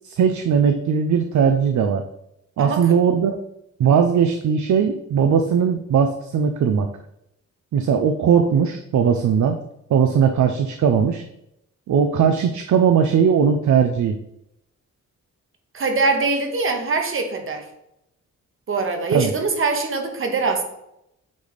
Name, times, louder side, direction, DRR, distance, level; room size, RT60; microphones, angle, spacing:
voice 1, 0.0-2.0 2.6-3.4 3.8-6.9 7.7-9.6 9.9-11.2 11.9-14.2 19.1-19.3, right 7 dB, 65° right, 6 dB, 0.5 m, -18 dB
voice 2, 2.6-3.0 15.7-17.7 18.7-20.6, right 3 dB, 40° right, 5 dB, 0.9 m, -23 dB
8.5 x 3.3 x 4.0 m, 0.82 s
wide cardioid pair, 175°, 31 cm